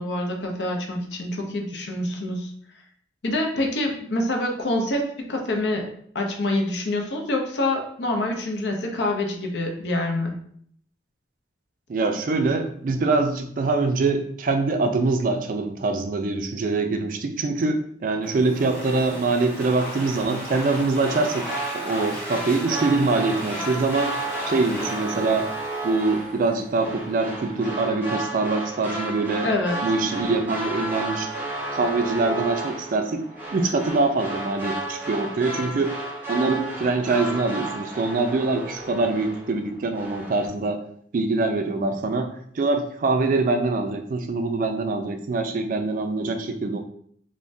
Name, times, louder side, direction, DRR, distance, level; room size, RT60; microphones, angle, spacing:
voice 1, 0.0-2.5 3.2-5.9 6.1-10.3 29.4-29.8, left 1 dB, 75° left, 2 dB, 0.6 m, -26 dB
voice 2, 11.9-21.5 21.7-24.2 24.5-25.5 25.8-29.5 29.8-31.3 31.7-33.2 33.5-35.9 36.3-40.8 41.1-42.3 42.5-46.8, right 3 dB, 50° right, 5 dB, 0.3 m, -24 dB
Domestic sounds home sounds, 18.2-26.7, equal, 5° left, 1.0 m, -37 dB
sound 1, 20.5-39.6 39.9-40.5, right 2 dB, 10° right, 0.6 m, -33 dB
3.3 x 2.1 x 2.6 m, 0.63 s
head